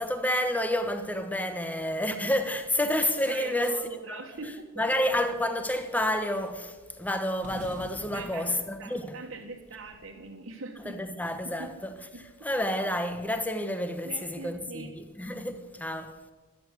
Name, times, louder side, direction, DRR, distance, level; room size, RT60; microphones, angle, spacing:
voice 1, 0.0-4.2 4.8-9.2 10.8-12.0 12.4-16.3, left 1 dB, 5° left, 1.1 m, -29 dB
sound 1, 3.0-4.0 5.7-6.1 6.3-6.6 7.4-9.8, right 2 dB, 35° right, 1.5 m, -48 dB
voice 2, 3.3-4.7 8.1-11.0 11.4-11.8 12.1-12.2 14.0-14.9, right 3 dB, 55° right, 1.6 m, -42 dB
13.0 x 12.5 x 8.3 m
head